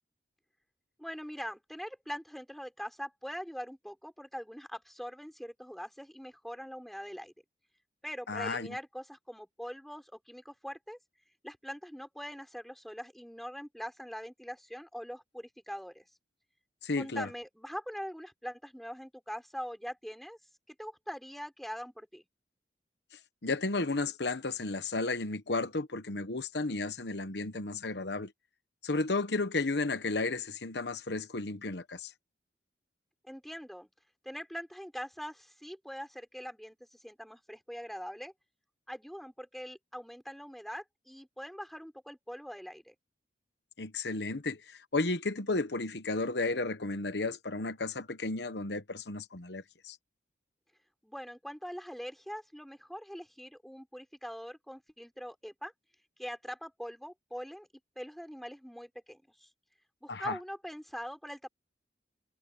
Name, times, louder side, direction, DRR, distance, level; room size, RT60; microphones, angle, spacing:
voice 1, 1.0-7.3 8.0-11.0 11.4-16.1 17.0-20.4 20.7-22.3 33.2-33.9 34.2-38.3 38.9-42.9 51.0-55.7 56.2-57.7 58.0-59.5 60.0-61.5, equal, ahead, 6.3 m, -43 dB
voice 2, 8.3-8.8 16.8-17.3 23.4-28.3 28.8-32.1 43.8-50.0 60.1-60.4, left 3 dB, 70° left, 1.2 m, -33 dB
head